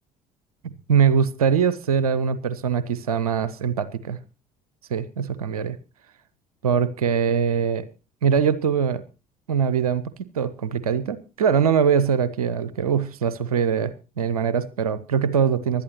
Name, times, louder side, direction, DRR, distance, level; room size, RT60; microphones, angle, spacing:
voice 1, 0.6-4.2 4.9-5.8 6.6-7.9 8.2-9.0 9.5-10.0 10.3-15.8, right 7 dB, 80° right, 16 dB, 0.7 m, -22 dB
24.5 x 11.5 x 3.0 m, 0.31 s
figure-of-eight pair, 55°, 19 cm